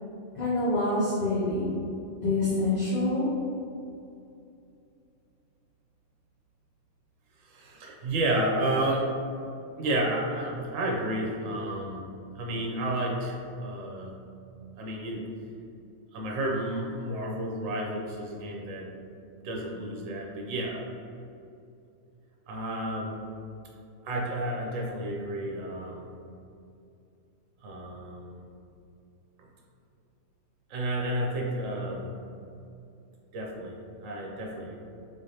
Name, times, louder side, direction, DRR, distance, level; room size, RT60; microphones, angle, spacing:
voice 1, 0.3-1.8 2.2-3.3, left 2 dB, 40° left, -10 dB, 0.7 m, -26 dB
voice 2, 7.4-9.1 9.8-12.1 12.3-14.1 14.8-15.2 16.1-18.9 19.4-20.8 22.5-23.2 24.0-26.1 27.6-28.4 30.7-32.1 33.3-34.8, right 1 dB, 80° right, -1 dB, 1.0 m, -31 dB
3.7 x 3.3 x 2.7 m, 2.6 s
omnidirectional pair, 1.3 m